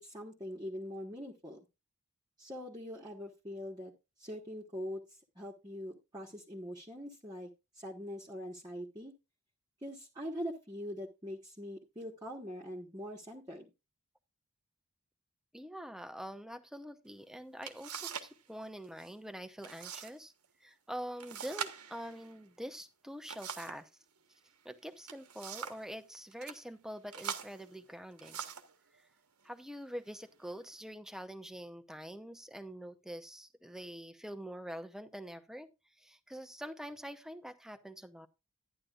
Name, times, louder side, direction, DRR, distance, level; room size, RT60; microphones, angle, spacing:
voice 1, 0.0-1.6 2.4-3.9 4.2-7.5 7.7-9.1 9.8-13.7, equal, 20° right, -4 dB, 1.4 m, -43 dB
voice 2, 15.5-20.3 20.6-23.9 24.6-28.4 29.4-35.7 36.0-38.3, equal, ahead, 9 dB, 0.8 m, -45 dB
sound 1, 17.1-17.2 17.6-18.4 18.6-19.1 19.6-20.1 20.4-20.5 21.2-23.9 24.8-25.9 26.3-26.6 27.1-28.8 29.5-29.7 30.2-30.7, right 7 dB, 75° right, 1.3 m, -43 dB
11.5 x 10.5 x 2.5 m, 0.26 s
head